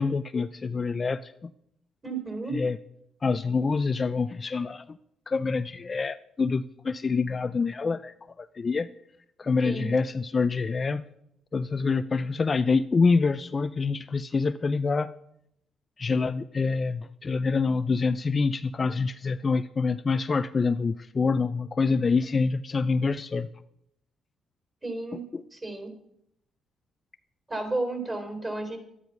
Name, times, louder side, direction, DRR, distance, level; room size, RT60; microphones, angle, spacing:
voice 1, 0.0-1.5 2.5-2.8 3.2-4.8 5.3-8.9 9.4-11.0 11.5-15.1 16.0-23.5 25.3-25.4, left 4 dB, 35° left, 12 dB, 0.5 m, -26 dB
voice 2, 2.0-2.6 9.6-9.9 24.8-25.2 25.5-25.9 27.5-28.8, right 2 dB, 25° right, 5 dB, 4.4 m, -32 dB
12.5 x 10.5 x 5.9 m, 0.75 s
cardioid pair, 90°, 0 cm